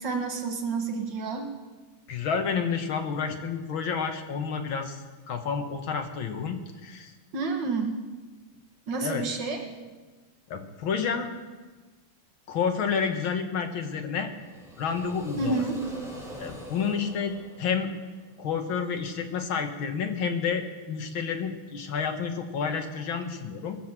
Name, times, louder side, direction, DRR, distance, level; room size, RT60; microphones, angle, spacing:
voice 1, 0.0-1.5 7.3-8.0 8.9-9.9 15.4-15.8, right 4 dB, 65° right, 3 dB, 2.1 m, -29 dB
voice 2, 2.1-5.0 5.3-7.1 9.0-9.2 10.5-11.3 12.5-14.3 14.8-15.6 16.4-17.9 18.4-23.8, left 6 dB, 90° left, 6 dB, 2.1 m, -30 dB
sound 1, 14.3-18.3, right 1 dB, ahead, 2.5 m, -43 dB
20.5 x 8.0 x 7.4 m, 1.3 s
omnidirectional pair, 2.1 m